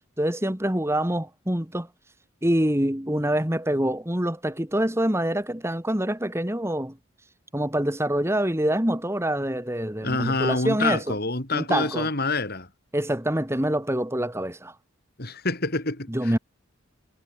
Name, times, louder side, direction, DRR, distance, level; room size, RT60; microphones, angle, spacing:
voice 1, 0.2-1.9 2.4-7.0 7.5-11.1 11.5-12.1 12.9-14.7 16.1-16.4, right 1 dB, 10° right, 2.1 m, -25 dB
voice 2, 10.0-12.7 15.2-16.4, left 3 dB, 50° left, 4.2 m, -27 dB
head